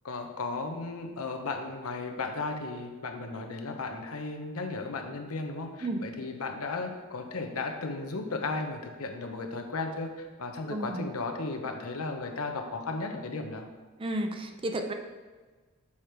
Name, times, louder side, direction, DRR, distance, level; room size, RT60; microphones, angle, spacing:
voice 1, 0.0-13.7, left 3 dB, 80° left, 4 dB, 0.9 m, -35 dB
voice 2, 10.7-11.1 14.0-14.9, right 1 dB, 25° right, 6 dB, 0.5 m, -32 dB
7.1 x 4.9 x 4.5 m, 1.4 s
head